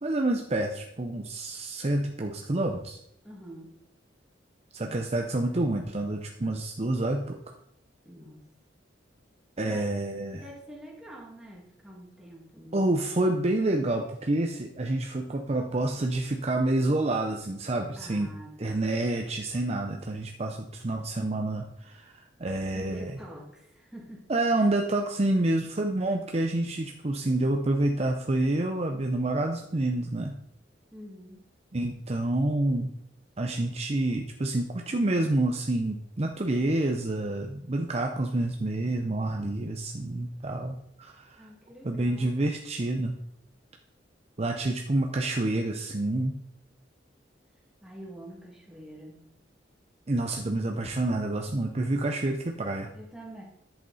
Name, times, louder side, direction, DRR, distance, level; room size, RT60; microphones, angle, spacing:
voice 1, 0.0-3.0 4.7-7.4 9.6-10.5 12.7-18.3 18.6-23.1 24.3-30.4 31.7-32.9 33.4-41.4 41.8-43.2 44.4-46.3 50.1-52.9, right 2 dB, 35° right, 3 dB, 0.6 m, -28 dB
voice 2, 3.2-3.7 8.0-8.5 9.6-9.9 10.3-12.9 18.0-18.8 22.7-24.3 30.9-31.4 41.4-42.4 47.8-49.2 52.9-53.4, right 1 dB, 5° right, -2 dB, 2.2 m, -46 dB
10.5 x 7.9 x 4.1 m, 0.77 s
head